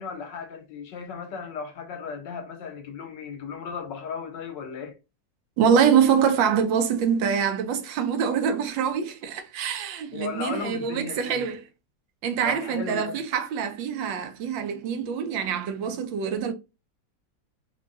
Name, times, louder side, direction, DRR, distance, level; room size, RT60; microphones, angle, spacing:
voice 1, 0.0-5.0 10.1-11.5 12.4-13.2, left 6 dB, 75° left, 1.3 m, -36 dB
voice 2, 5.6-11.6 12.2-16.5, right 7 dB, 80° right, 1.3 m, -24 dB
3.6 x 2.2 x 2.5 m
omnidirectional pair, 2.1 m